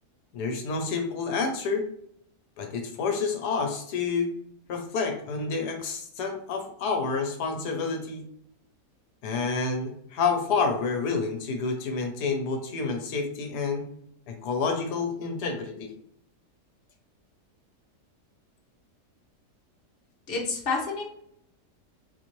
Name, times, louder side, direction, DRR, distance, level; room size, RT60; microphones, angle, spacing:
voice 1, 0.3-1.8 2.6-4.3 4.7-8.2 9.2-13.8 14.3-15.9, left 4 dB, 80° left, 4 dB, 1.2 m, -29 dB
voice 2, 20.3-21.0, left 4 dB, 40° left, -1 dB, 1.0 m, -28 dB
4.2 x 2.5 x 3.0 m, 0.69 s
omnidirectional pair, 1.7 m